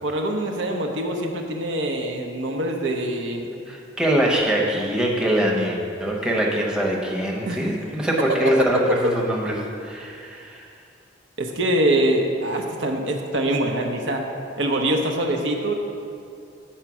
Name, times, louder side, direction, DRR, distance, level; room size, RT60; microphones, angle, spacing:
voice 1, 0.0-3.5 7.4-7.7 8.4-8.5 9.0-9.1 11.4-14.2 14.6-15.7, right 1 dB, 75° right, 2 dB, 0.8 m, -24 dB
voice 2, 3.7-9.5 9.8-10.7, right 1 dB, 5° right, -2 dB, 0.8 m, -23 dB
8.0 x 4.4 x 6.0 m, 2.5 s
head